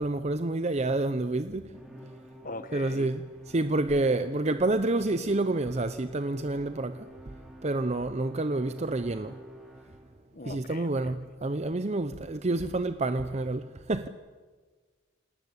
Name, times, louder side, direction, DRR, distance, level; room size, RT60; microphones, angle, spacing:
voice 1, 0.0-1.7 2.7-7.0 7.6-9.3 10.5-14.1, right 2 dB, 35° right, 0.7 m, -28 dB
Musical instrument, 1.7-10.3, equal, ahead, 4.1 m, -50 dB
voice 2, 2.4-3.1 10.3-11.2, left 2 dB, 45° left, 1.4 m, -41 dB
28.5 x 19.5 x 8.3 m
head